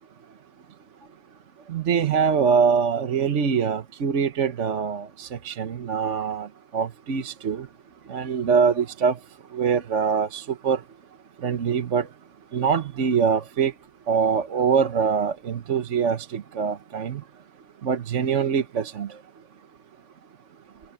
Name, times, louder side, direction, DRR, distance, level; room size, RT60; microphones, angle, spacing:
voice 1, 1.7-6.5 6.7-7.7 8.1-9.2 9.5-10.8 11.4-12.1 12.5-13.7 14.1-17.2 17.8-19.1, right 6 dB, 45° right, 1.2 m, -23 dB
omnidirectional pair, 2.0 m